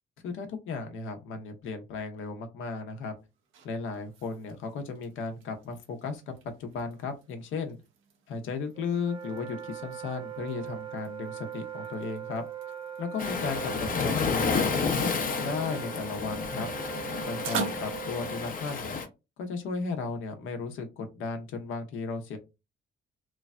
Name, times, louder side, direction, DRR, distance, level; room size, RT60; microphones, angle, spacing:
voice 1, 0.2-3.1 3.6-6.3 6.6-7.8 8.3-12.5 13.0-16.7 17.3-19.0 19.4-22.4, left 4 dB, 85° left, 6 dB, 0.8 m, -35 dB
sound 1, 3.2-18.0, right 5 dB, 90° right, 0.7 m, -45 dB
Wind instrument woodwind instrument, 8.7-18.7, right 9 dB, 30° right, 0.7 m, -40 dB
Waves surf, 13.2-19.1, left 5 dB, 45° left, 0.7 m, -31 dB
3.1 x 2.2 x 2.4 m, 0.25 s
cardioid pair, 90°, 20 cm